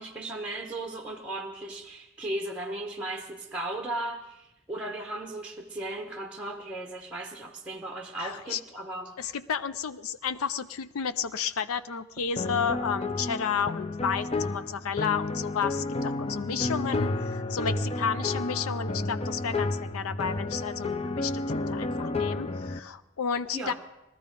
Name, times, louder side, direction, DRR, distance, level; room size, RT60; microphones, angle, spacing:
voice 1, 0.0-9.1 23.5-23.7, right 1 dB, 5° right, 3 dB, 1.0 m, -36 dB
voice 2, 8.2-8.6 9.2-23.7, left 6 dB, 90° left, 13 dB, 0.5 m, -32 dB
sound 1, 12.4-22.8, left 2 dB, 30° left, 0.5 m, -31 dB
19.0 x 13.5 x 5.3 m, 0.93 s
head